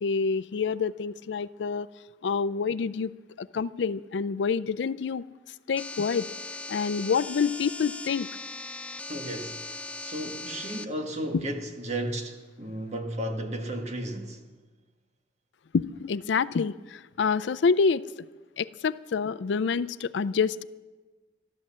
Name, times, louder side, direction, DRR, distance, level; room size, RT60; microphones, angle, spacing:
voice 1, 0.0-1.9 2.2-3.1 3.4-5.2 5.7-6.3 6.7-8.3 15.7-16.7 17.2-18.0 18.6-20.6, left 5 dB, 80° left, 0.4 m, -27 dB
sound 1, 5.8-10.9, left 2 dB, 5° left, 0.4 m, -39 dB
voice 2, 9.1-14.4, right 1 dB, 40° right, 1.5 m, -34 dB
13.0 x 12.5 x 7.3 m
head